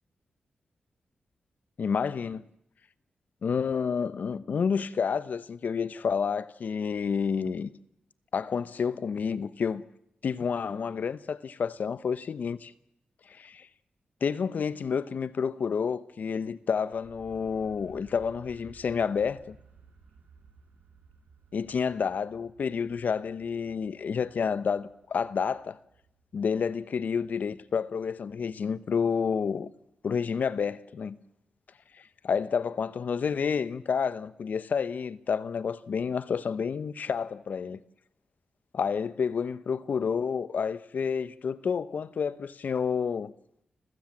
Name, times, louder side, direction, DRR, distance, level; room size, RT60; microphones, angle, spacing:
voice 1, 1.8-2.4 3.4-7.7 8.3-9.8 10.2-12.7 13.3-13.7 14.2-19.6 21.5-25.8 26.3-29.7 30.0-31.2 32.2-37.8 38.7-43.3, left 6 dB, 65° left, 1.0 m, -29 dB
sound 1, 16.9-28.7, right 5 dB, 85° right, 4.7 m, -58 dB
29.5 x 15.5 x 7.4 m
cardioid pair, 80°, 3 cm